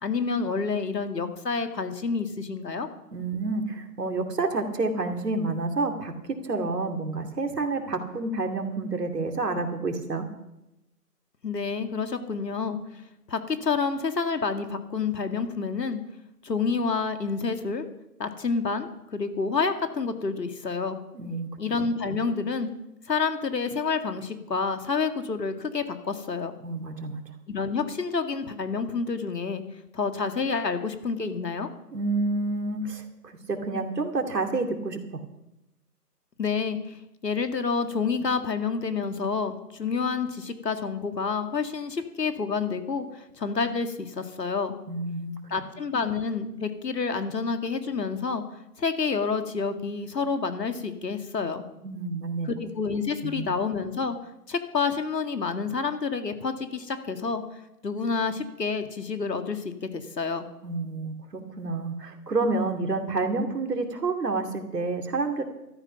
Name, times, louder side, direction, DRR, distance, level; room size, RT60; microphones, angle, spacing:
voice 1, 0.0-2.9 11.4-12.8 13.3-16.0 16.4-17.9 18.2-21.0 21.6-22.7 23.1-26.5 27.5-29.6 29.9-31.7 36.4-44.8 45.5-48.4 48.8-51.6 52.5-54.2 54.5-57.4 57.8-60.5, left 5 dB, 80° left, 7 dB, 2.2 m, -28 dB
voice 2, 3.1-10.3 21.1-21.5 26.6-27.2 31.9-35.2 44.9-45.4 51.8-52.5 53.2-53.5 60.6-65.4, right 3 dB, 75° right, 5 dB, 2.8 m, -29 dB
13.5 x 13.0 x 5.9 m, 0.91 s
hypercardioid pair, 165°, 48 cm